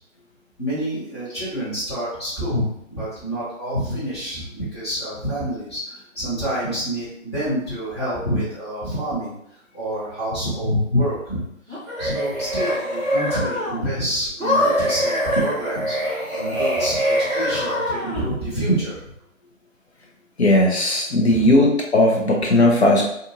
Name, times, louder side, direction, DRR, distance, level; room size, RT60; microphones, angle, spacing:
voice 1, 0.6-9.3 9.7-11.4 12.0-19.0 21.3-21.6, equal, 20° left, -10 dB, 1.1 m, -27 dB
sound 1, 11.7-13.9 14.4-18.3, equal, ahead, 0.8 m, -23 dB
voice 2, 20.4-23.0, left 1 dB, 55° left, -1 dB, 0.8 m, -17 dB
2.6 x 2.5 x 2.7 m, 0.75 s
figure-of-eight pair, 165°, 41 cm